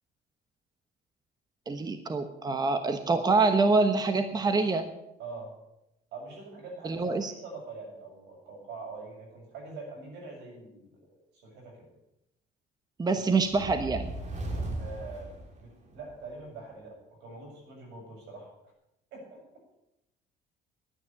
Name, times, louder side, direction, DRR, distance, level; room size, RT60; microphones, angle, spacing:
voice 1, 1.7-4.9 6.8-7.3 13.0-14.1, right 3 dB, 25° right, 8 dB, 1.2 m, -25 dB
voice 2, 5.2-5.5 6.1-11.9 14.8-18.5 19.1-19.4, right 3 dB, 85° right, 0 dB, 7.5 m, -44 dB
sound 1, 13.4-16.2, right 2 dB, 45° right, 3.1 m, -37 dB
12.0 x 9.7 x 8.7 m, 0.88 s
cardioid pair, 110°, 17 cm